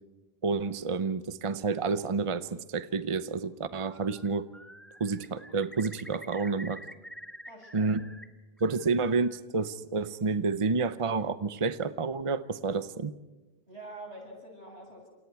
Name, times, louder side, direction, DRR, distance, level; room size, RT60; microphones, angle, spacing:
voice 1, 0.4-4.5 5.0-6.8 7.7-8.0 8.6-13.1, right 4 dB, 35° right, 12 dB, 0.8 m, -29 dB
Bird, 3.7-4.3 4.5-8.2 8.6-9.4, equal, ahead, 1.4 m, -48 dB
voice 2, 7.5-7.9 13.7-15.1, right 1 dB, 90° right, 0 dB, 8.3 m, -46 dB
29.0 x 28.0 x 4.7 m, 1.1 s
omnidirectional pair, 1.1 m